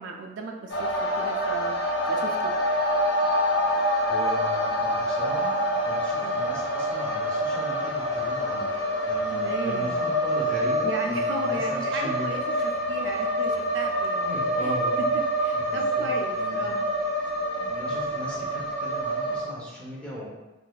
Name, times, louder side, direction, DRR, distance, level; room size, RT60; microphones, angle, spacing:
voice 1, 0.0-2.5 6.2-6.4 9.3-10.0 10.8-12.4 12.9-14.4 14.6-14.8 15.4-16.8, right 3 dB, 75° right, 2 dB, 0.4 m, -35 dB
sound 1, 0.7-19.4, equal, 65° left, 0.7 m, -26 dB
voice 2, 3.8-5.6 5.9-8.7 9.0-12.7 14.1-15.1 15.5-16.8 17.6-20.3, equal, 5° left, -6 dB, 0.8 m, -38 dB
3.8 x 2.5 x 2.3 m, 1.1 s
head